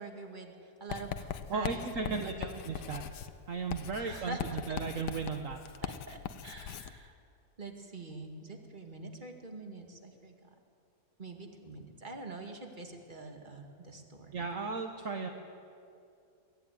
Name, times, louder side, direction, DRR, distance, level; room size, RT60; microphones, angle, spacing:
voice 1, 0.0-2.6 4.0-4.4 5.8-7.2 7.6-10.5 11.2-14.3, right 3 dB, 30° right, 3 dB, 2.2 m, -45 dB
Writing, 0.9-7.0, left 9 dB, 90° left, 1.4 m, -41 dB
voice 2, 1.5-2.3 2.6-3.0 3.5-5.6 14.3-15.3, right 4 dB, 55° right, 4 dB, 1.5 m, -35 dB
23.0 x 15.5 x 9.4 m, 2.5 s
omnidirectional pair, 1.7 m